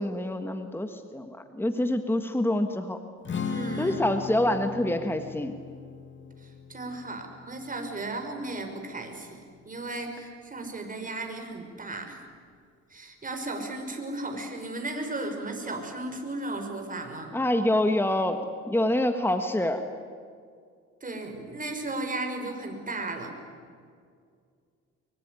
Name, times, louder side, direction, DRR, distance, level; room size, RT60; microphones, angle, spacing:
voice 1, 0.0-3.0 3.8-5.5 17.3-19.8, left 1 dB, 5° left, 7 dB, 1.7 m, -26 dB
Strum, 3.2-9.5, left 6 dB, 40° left, 2.3 m, -38 dB
voice 2, 3.4-4.0 6.4-12.2 12.9-17.3 21.0-23.3, right 2 dB, 25° right, 4 dB, 5.8 m, -35 dB
24.0 x 23.5 x 9.8 m, 2.2 s
cardioid pair, 90°, 30 cm